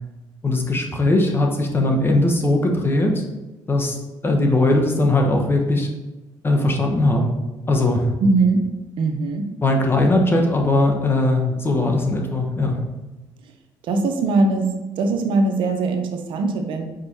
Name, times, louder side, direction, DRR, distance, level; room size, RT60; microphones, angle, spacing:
voice 1, 0.4-3.2 3.7-5.9 6.4-7.3 7.7-8.1 9.6-12.8, left 2 dB, 25° left, 2 dB, 1.2 m, -19 dB
voice 2, 8.2-8.6 9.0-9.5 13.8-14.7 15.0-16.9, right 3 dB, 75° right, 4 dB, 0.9 m, -20 dB
5.3 x 4.5 x 4.1 m, 1.1 s
cardioid pair, 90°, 9 cm